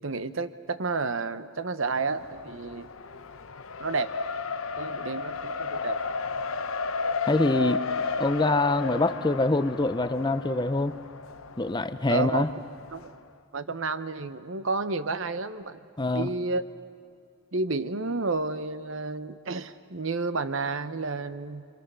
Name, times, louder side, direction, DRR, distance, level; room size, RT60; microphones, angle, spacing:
voice 1, 0.0-2.9 3.8-4.1 4.8-6.0 12.1-12.5 12.9-13.1 13.5-15.8 16.1-16.6 17.5-21.7, right 3 dB, 65° right, 11 dB, 0.9 m, -31 dB
Race car auto racing, 2.1-13.1, left 4 dB, 70° left, 0.8 m, -33 dB
voice 2, 7.3-7.9 8.2-11.0 11.6-12.5 16.0-16.3, left 2 dB, 20° left, 11 dB, 0.6 m, -25 dB
26.5 x 26.0 x 6.9 m, 2.3 s
head